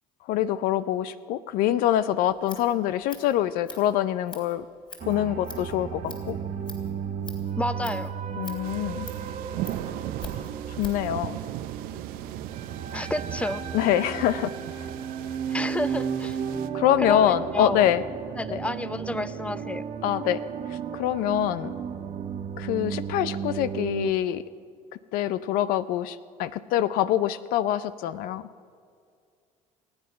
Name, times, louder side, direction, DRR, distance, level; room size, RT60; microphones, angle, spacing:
voice 1, 0.3-4.6 5.0-6.4 8.4-9.1 10.8-11.4 13.7-14.5 14.8-14.9 16.7-18.0 18.5-18.6 20.0-20.4 20.9-21.7 22.6-24.4 25.1-28.4, left 11 dB, 75° left, 15 dB, 0.6 m, -25 dB
Scissors, 2.2-11.1, left 3 dB, 35° left, 3.4 m, -45 dB
sound 1, 5.0-24.1, right 7 dB, 55° right, 1.6 m, -34 dB
voice 2, 7.6-8.1 12.9-13.6 15.5-16.4 17.0-17.9 18.4-19.8, left 1 dB, 10° left, 13 dB, 0.7 m, -30 dB
sound 2, 8.6-16.7, right 14 dB, 80° right, 0.7 m, -38 dB
26.5 x 9.7 x 5.6 m, 2.3 s
supercardioid pair, 95°, 15 cm